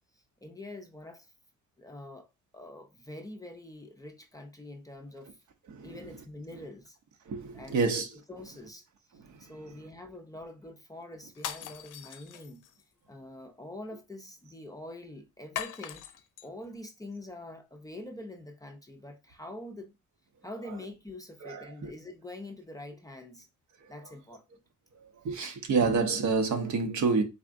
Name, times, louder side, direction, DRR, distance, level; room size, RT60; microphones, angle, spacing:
voice 1, 0.1-1.3 1.8-2.3 2.5-5.4 5.8-7.0 7.5-7.9 8.3-8.9 9.4-12.6 13.1-16.0 16.4-19.9 20.4-23.5 23.9-24.4, left 1 dB, 10° left, 0.5 m, -45 dB
voice 2, 5.7-6.0 7.3-8.1 9.1-9.7 20.6-20.8 21.4-21.9 25.0-27.2, right 4 dB, 65° right, 0.9 m, -29 dB
sound 1, 11.3-12.8 15.6-16.5, left 10 dB, 75° left, 0.6 m, -40 dB
4.1 x 3.5 x 2.5 m
cardioid pair, 130°, 31 cm